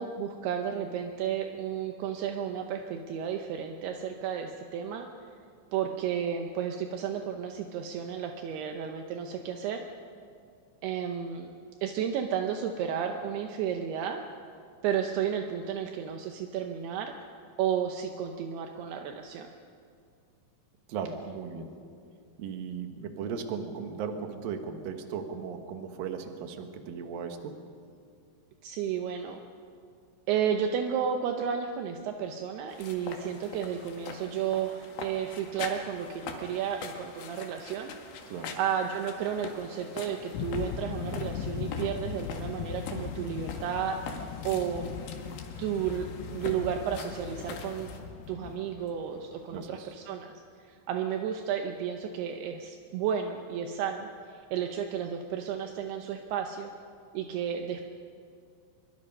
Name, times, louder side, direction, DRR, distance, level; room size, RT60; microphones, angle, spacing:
voice 1, 0.0-5.1 5.7-9.9 10.8-11.5 11.8-14.3 14.8-17.3 17.6-19.5 28.6-29.4 30.3-37.9 38.6-45.0 45.6-47.9 48.3-50.3 50.6-56.7 57.1-57.9, right 8 dB, 80° right, 4 dB, 2.4 m, -32 dB
voice 2, 20.9-21.7 22.4-27.6 38.3-38.6 49.5-49.9, right 6 dB, 65° right, 6 dB, 2.5 m, -37 dB
sound 1, 32.7-48.0, left 4 dB, 60° left, 2.9 m, -43 dB
sound 2, 40.3-49.7, left 7 dB, 85° left, 3.6 m, -38 dB
24.0 x 23.0 x 5.4 m, 2.3 s
omnidirectional pair, 5.7 m